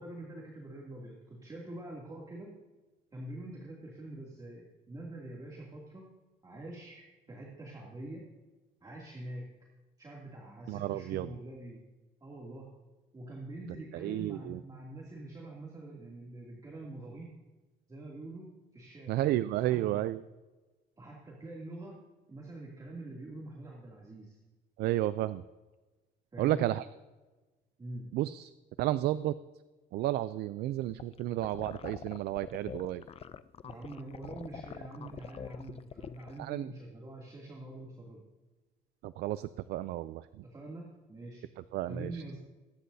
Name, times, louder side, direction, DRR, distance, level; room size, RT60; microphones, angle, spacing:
voice 1, 0.0-2.5 3.1-6.0 6.4-8.2 8.8-9.4 10.0-11.8 12.2-12.7 13.1-17.3 17.9-19.2 19.5-20.1 21.0-22.0 22.3-24.4 26.3-26.7 27.8-28.1 33.6-38.2 40.4-41.4 41.9-42.4, right 2 dB, 20° right, -3 dB, 2.7 m, -45 dB
voice 2, 10.7-11.3 13.9-14.6 19.1-20.2 24.8-25.4 26.4-26.9 28.1-28.5 28.8-29.4 29.9-33.0 36.4-36.7 39.0-40.4 41.7-42.2, right 14 dB, 75° right, 15 dB, 0.4 m, -32 dB
sound 1, 30.9-36.4, left 8 dB, 35° left, 0.5 m, -45 dB
22.5 x 10.0 x 2.8 m, 1.2 s
cardioid pair, 110°, 17 cm